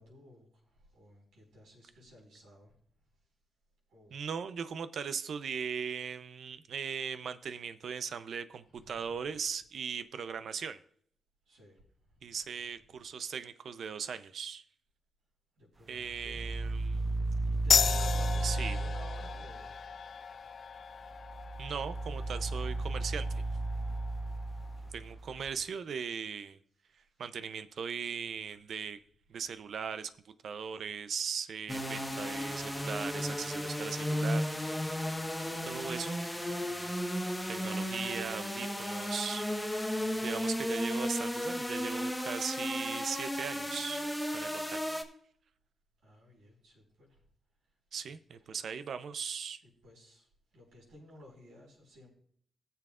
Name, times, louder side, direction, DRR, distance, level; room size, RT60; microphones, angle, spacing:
voice 1, 0.0-2.8 3.9-4.2 8.7-9.4 11.5-11.8 12.1-12.3 15.6-16.5 17.5-19.8 24.5-25.0 36.5-37.0 46.0-47.2 47.9-48.0 48.4-48.6 49.6-50.3 50.5-52.1, equal, 85° right, 4.7 m, -56 dB
voice 2, 4.1-10.8 12.2-14.6 15.9-17.0 18.4-18.8 21.6-23.4 24.9-26.6 27.2-29.0 29.3-34.4 35.6-36.4 37.5-44.1 44.3-44.8 47.9-49.6, right 6 dB, 70° right, 0.5 m, -39 dB
sound 1, 16.1-19.8 21.1-25.5, right 2 dB, 30° right, 0.9 m, -34 dB
sound 2, 17.7-24.8, left 6 dB, 60° left, 0.4 m, -35 dB
sound 3, 31.7-45.0, equal, 5° left, 1.3 m, -34 dB
19.5 x 6.9 x 2.4 m
cardioid pair, 65°, 0 cm